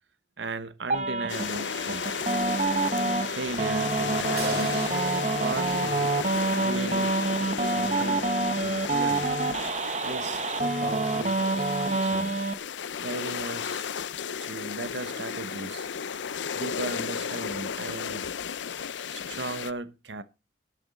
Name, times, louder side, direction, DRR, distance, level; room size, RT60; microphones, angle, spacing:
voice 1, 0.4-2.3 3.3-4.9 5.2-6.2 6.6-7.1 7.6-8.3 8.6-9.3 10.0-11.4 11.8-12.4 13.0-13.9 14.4-15.9 16.5-18.4 19.1-20.2, right 3 dB, 80° right, 1.0 m, -37 dB
sound 1, 0.9-12.5, right 3 dB, 40° right, 1.1 m, -27 dB
sound 2, 1.3-19.7, left 7 dB, 85° left, 0.6 m, -34 dB
sound 3, 4.4-8.6, right 2 dB, 60° right, 2.8 m, -41 dB
14.5 x 11.0 x 4.1 m
head